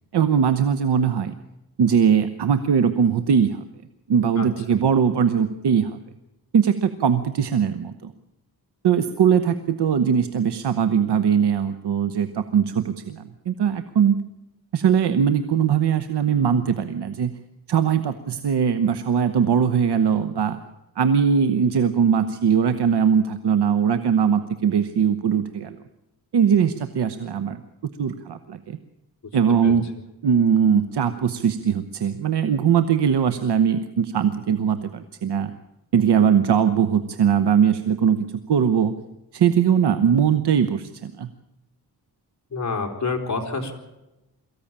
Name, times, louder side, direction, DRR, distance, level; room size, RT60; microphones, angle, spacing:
voice 1, 0.1-1.3 1.8-3.6 4.1-6.0 6.5-8.1 8.8-14.2 14.7-17.4 17.7-20.6 21.0-25.8 26.3-28.8 29.3-29.9 30.2-35.5 35.9-38.9 39.3-41.3, right 7 dB, 70° right, 10 dB, 1.1 m, -20 dB
voice 2, 42.5-43.7, left 4 dB, 40° left, 3 dB, 3.8 m, -27 dB
23.0 x 15.0 x 8.8 m, 0.95 s
wide cardioid pair, 105°, 41 cm